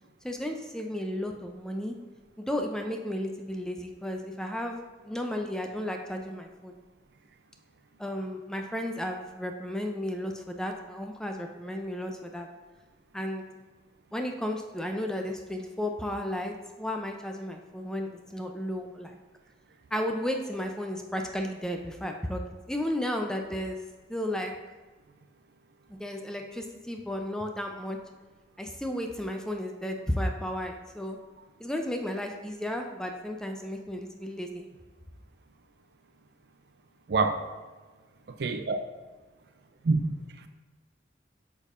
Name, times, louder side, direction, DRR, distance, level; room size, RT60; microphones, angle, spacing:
voice 1, 0.2-1.9 2.4-4.8 5.0-6.7 8.0-12.5 13.1-13.4 14.1-19.2 19.9-23.8 24.1-24.5 25.9-28.0 28.6-31.2 31.6-34.7, left 1 dB, 5° left, 3 dB, 0.4 m, -33 dB
voice 2, 37.1-37.4 38.4-38.8 39.8-40.0 40.4-40.5, right 3 dB, 60° right, 8 dB, 0.4 m, -25 dB
8.3 x 5.3 x 2.5 m, 1.3 s
head